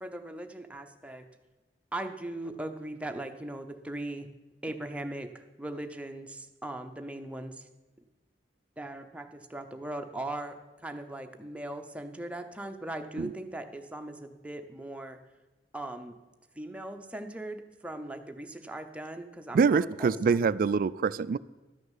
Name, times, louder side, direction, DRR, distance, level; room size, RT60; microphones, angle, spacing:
voice 1, 0.0-1.3 1.9-4.3 4.6-7.7 8.8-15.2 15.7-16.1 16.6-20.5, right 1 dB, 5° right, 5 dB, 0.7 m, -39 dB
voice 2, 19.5-21.4, right 5 dB, 50° right, 18 dB, 0.3 m, -25 dB
12.0 x 6.5 x 7.3 m, 1.2 s
head